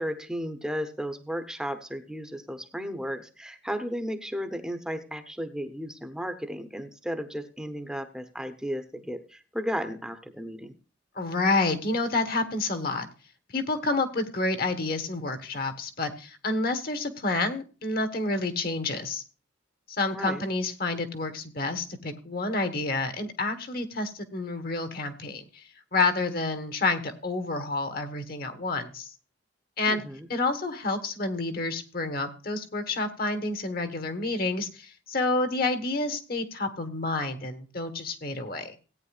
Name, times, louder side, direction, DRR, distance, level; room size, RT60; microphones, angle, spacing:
voice 1, 0.0-10.7 20.1-20.4 29.9-30.3, equal, 5° right, 7 dB, 0.9 m, -34 dB
voice 2, 11.1-13.1 13.5-19.2 19.9-25.6 25.9-29.1 29.8-30.0 30.3-38.7, left 3 dB, 55° left, 7 dB, 1.5 m, -29 dB
17.0 x 9.1 x 2.4 m, 0.34 s
head